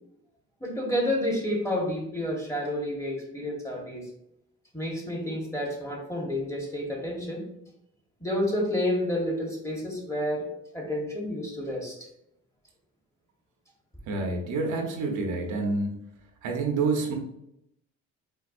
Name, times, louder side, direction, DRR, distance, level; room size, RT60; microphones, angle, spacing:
voice 1, 0.6-4.0 4.7-7.5 8.2-10.5 10.7-11.9, left 1 dB, 10° left, -1 dB, 1.2 m, -30 dB
voice 2, 14.1-15.9 16.4-17.1, right 3 dB, 75° right, 2 dB, 0.8 m, -28 dB
4.4 x 2.3 x 2.4 m, 0.79 s
cardioid pair, 75°, 32 cm